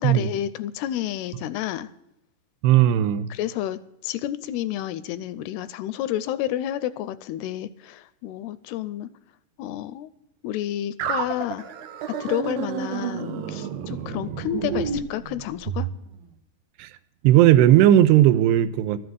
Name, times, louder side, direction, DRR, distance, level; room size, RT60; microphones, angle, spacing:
voice 1, 0.0-1.9 3.3-9.1 9.6-10.1 10.4-11.7 12.2-15.9, left 12 dB, 80° left, 2.4 m, -30 dB
voice 2, 2.6-3.3 16.8-16.9 17.2-19.0, right 12 dB, 90° right, 2.8 m, -16 dB
sound 1, 11.0-15.9, right 8 dB, 70° right, 2.6 m, -30 dB
13.5 x 7.7 x 7.9 m
omnidirectional pair, 4.8 m